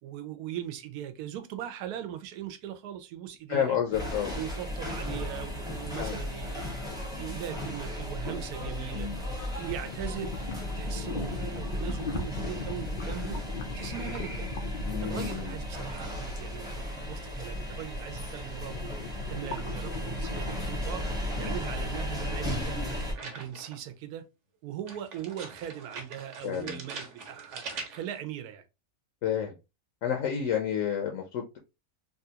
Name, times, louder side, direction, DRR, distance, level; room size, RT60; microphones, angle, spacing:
voice 1, 0.0-3.8 4.3-6.7 7.1-9.1 9.5-14.5 15.0-18.9 19.3-22.8 23.2-24.2 24.6-27.6 27.9-28.6, right 11 dB, 85° right, 1.1 m, -39 dB
voice 2, 3.5-4.4 6.0-6.2 8.9-9.2 11.0-11.4 14.9-15.6 21.4-21.5 26.4-26.8 29.2-29.5 30.0-31.6, left 8 dB, 70° left, 0.9 m, -31 dB
sound 1, 3.9-23.1, left 1 dB, 5° right, 0.6 m, -35 dB
sound 2, 9.8-15.5 18.5-20.8, left 4 dB, 90° left, 0.4 m, -39 dB
sound 3, 22.9-23.9 24.9-28.2, right 4 dB, 60° right, 1.0 m, -42 dB
3.3 x 2.4 x 2.7 m
omnidirectional pair, 1.6 m